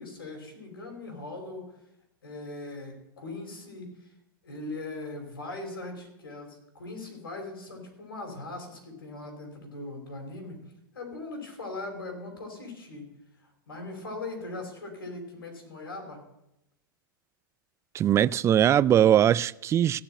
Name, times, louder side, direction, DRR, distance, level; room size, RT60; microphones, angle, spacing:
voice 1, 0.0-1.7 2.2-4.1 4.4-10.6 10.9-13.1 13.4-16.2, left 2 dB, 85° left, 5.0 m, -40 dB
voice 2, 17.9-20.0, right 10 dB, 25° right, 0.4 m, -21 dB
16.0 x 7.0 x 9.0 m
hypercardioid pair, 110°, 12 cm